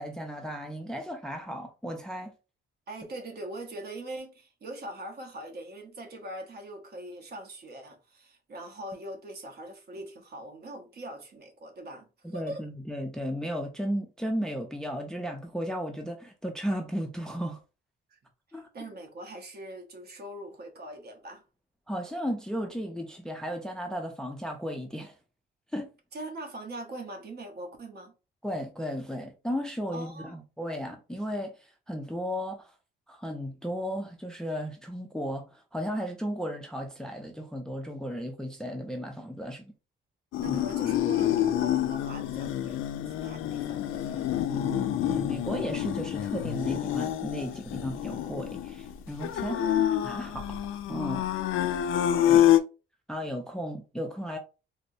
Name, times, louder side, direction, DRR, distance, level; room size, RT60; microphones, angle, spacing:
voice 1, 0.0-2.3 12.3-17.6 18.5-18.7 21.9-25.1 25.7-25.9 28.4-32.7 33.1-39.7 40.4-40.6 44.5-50.6 50.9-51.3 52.3-52.5 53.1-54.4, equal, 5° left, 0.4 m, -35 dB
voice 2, 2.9-12.6 18.1-18.2 18.7-21.4 26.1-28.1 29.9-30.4 40.4-42.8 43.1-44.6 49.5-49.8 51.8-52.0, right 1 dB, 50° right, 1.0 m, -42 dB
sound 1, 40.3-52.6, left 11 dB, 75° left, 0.4 m, -27 dB
4.2 x 2.0 x 2.6 m
cardioid pair, 125°, 21 cm